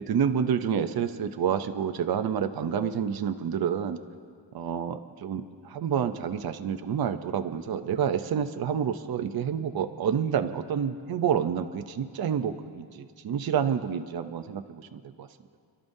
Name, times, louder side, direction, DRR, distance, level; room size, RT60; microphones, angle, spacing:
voice 1, 0.0-4.0 4.5-15.3, right 8 dB, 55° right, 8 dB, 0.6 m, -28 dB
29.0 x 12.5 x 2.7 m, 2.1 s
wide cardioid pair, 165°, 45 cm